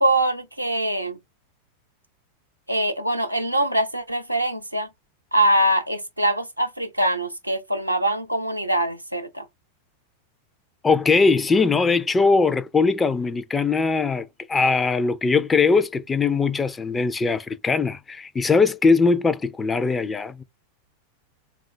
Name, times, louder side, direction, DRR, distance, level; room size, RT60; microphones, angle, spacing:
voice 1, 0.0-1.2 2.7-4.9 5.3-9.5, right 1 dB, 85° right, 0.7 m, -23 dB
voice 2, 10.8-20.4, left 4 dB, 15° left, 0.4 m, -21 dB
3.6 x 2.4 x 3.3 m
figure-of-eight pair, 90°, 0 cm